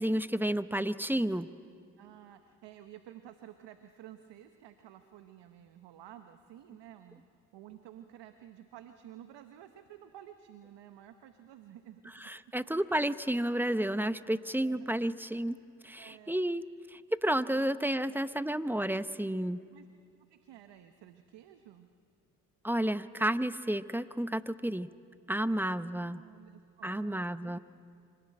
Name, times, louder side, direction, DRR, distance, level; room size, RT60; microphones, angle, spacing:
voice 1, 0.0-1.5 12.2-15.6 15.8-16.6 16.9-19.6 22.6-24.9 25.3-26.2 26.8-27.6, right 1 dB, 5° right, 14 dB, 0.8 m, -31 dB
voice 2, 2.0-7.3 7.5-12.2 12.6-12.8 14.6-14.9 16.0-16.6 17.6-17.7 18.1-18.3 19.2-19.4 19.7-19.9 20.3-21.9 25.5-27.6, right 11 dB, 75° right, 8 dB, 1.1 m, -52 dB
25.5 x 18.5 x 8.8 m, 2.3 s
supercardioid pair, 45°, 42 cm